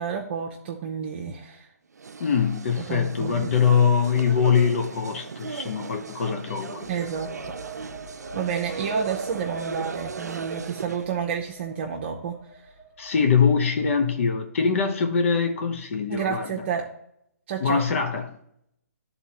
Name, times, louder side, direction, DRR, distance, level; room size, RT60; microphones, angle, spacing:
voice 1, 0.0-1.7 2.9-3.5 6.9-7.9 8.3-12.3 16.1-16.9 17.5-17.8, right 7 dB, 45° right, 0 dB, 0.8 m, -30 dB
sound 1, 1.9-11.1, right 5 dB, 90° right, 0.5 m, -37 dB
voice 2, 2.2-6.9 13.0-16.6 17.6-18.3, left 6 dB, 55° left, 5 dB, 0.8 m, -23 dB
sound 2, 6.7-14.3, right 3 dB, 20° left, 1.1 m, -44 dB
11.0 x 4.1 x 2.9 m, 0.74 s
hypercardioid pair, 150°, 9 cm